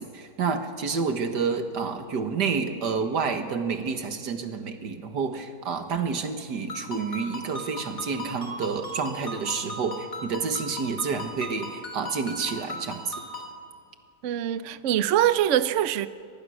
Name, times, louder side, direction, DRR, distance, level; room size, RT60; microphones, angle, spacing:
voice 1, 0.0-13.2, right 5 dB, 80° right, 2.1 m, -29 dB
Ringtone, 6.7-13.6, left 1 dB, 55° left, 3.8 m, -38 dB
voice 2, 14.2-16.1, right 11 dB, 60° right, 0.8 m, -23 dB
24.5 x 18.5 x 6.3 m
omnidirectional pair, 1.8 m